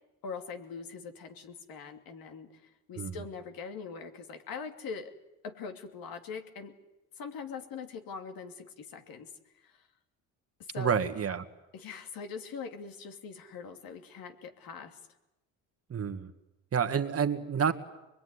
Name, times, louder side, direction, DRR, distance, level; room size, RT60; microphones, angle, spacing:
voice 1, 0.2-5.1 5.4-6.7 7.2-9.3 9.6-9.7 10.7-11.0 11.7-15.0, left 5 dB, 65° left, 5 dB, 2.8 m, -42 dB
voice 2, 10.8-11.4 15.9-16.3 16.7-17.7, right 7 dB, 40° right, 6 dB, 1.9 m, -29 dB
24.5 x 22.0 x 9.9 m, 0.98 s
supercardioid pair, 90°, 37 cm